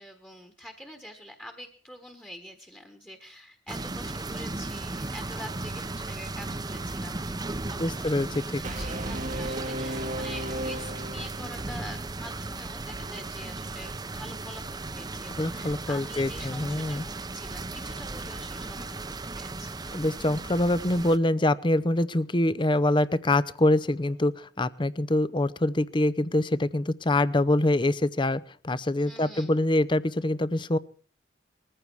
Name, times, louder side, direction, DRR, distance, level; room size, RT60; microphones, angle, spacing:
voice 1, 0.0-19.0 19.3-19.8 29.0-29.6, equal, 10° left, 5 dB, 1.4 m, -45 dB
sound 1, 3.7-21.2, right 2 dB, 20° right, 0.8 m, -36 dB
voice 2, 7.8-8.6 15.4-17.0 19.9-30.8, left 1 dB, 25° left, 16 dB, 0.7 m, -25 dB
Brass instrument, 8.6-11.7, right 1 dB, 45° right, 1.1 m, -34 dB
20.5 x 14.5 x 4.7 m, 0.42 s
head